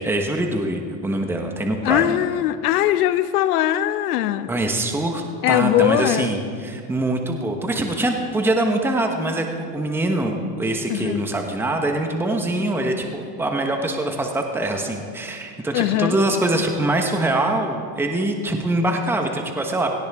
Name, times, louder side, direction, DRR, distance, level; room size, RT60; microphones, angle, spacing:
voice 1, 0.0-2.2 4.5-19.9, right 1 dB, 5° right, 3 dB, 1.2 m, -23 dB
voice 2, 1.8-4.5 5.4-6.3 10.9-11.2 15.7-16.2, left 13 dB, 70° left, 12 dB, 0.9 m, -20 dB
17.5 x 16.5 x 3.6 m, 2.2 s
supercardioid pair, 130°, 47 cm